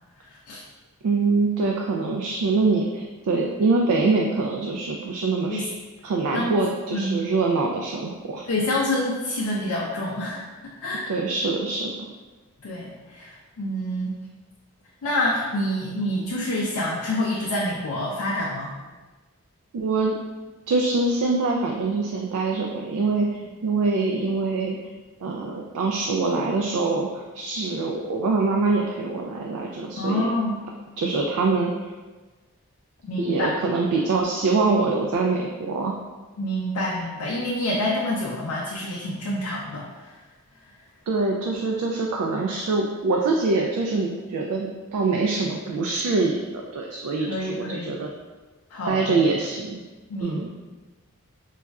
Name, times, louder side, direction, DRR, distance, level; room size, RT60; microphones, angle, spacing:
voice 1, 1.0-5.7 6.0-8.4 11.1-12.1 19.7-20.2 20.7-24.8 25.2-30.3 31.0-31.7 33.2-35.9 41.1-48.1 48.9-49.8 50.2-50.5, right 3 dB, 80° right, 0 dB, 0.3 m, -24 dB
voice 2, 6.9-7.2 8.5-11.1 12.6-14.2 15.0-18.7 30.0-30.6 33.0-33.6 36.4-39.9 47.3-47.9 48.7-49.2 50.1-50.5, left 1 dB, 75° left, -4 dB, 0.4 m, -27 dB
4.0 x 2.3 x 2.3 m, 1.3 s
head